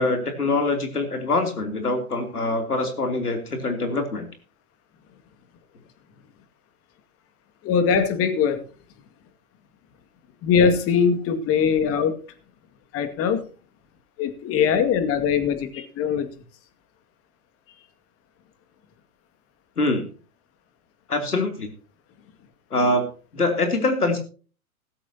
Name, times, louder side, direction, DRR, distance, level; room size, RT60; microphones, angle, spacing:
voice 1, 0.0-4.3 19.8-20.1 21.1-21.7 22.7-23.0 23.3-24.2, left 2 dB, 85° left, 5 dB, 3.3 m, -24 dB
voice 2, 7.6-8.6 10.4-12.1 12.9-13.4 14.2-16.3, left 6 dB, 30° left, 9 dB, 2.2 m, -21 dB
16.0 x 14.0 x 2.9 m, 0.38 s
figure-of-eight pair, 105°, 44 cm